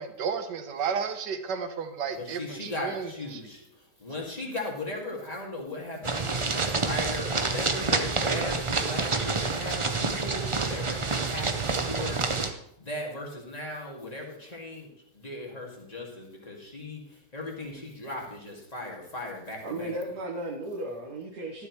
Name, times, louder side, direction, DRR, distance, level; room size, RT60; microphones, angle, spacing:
voice 1, 0.0-3.4, right 6 dB, 85° right, 8 dB, 1.7 m, -32 dB
voice 2, 2.1-3.6 4.0-12.2 12.8-19.9, left 2 dB, 20° left, -1 dB, 2.3 m, -38 dB
sound 1, 6.0-12.5, right 4 dB, 40° right, 0.4 m, -28 dB
voice 3, 19.6-21.7, right 1 dB, 65° right, -2 dB, 1.8 m, -35 dB
13.0 x 11.5 x 3.2 m, 0.79 s
omnidirectional pair, 1.8 m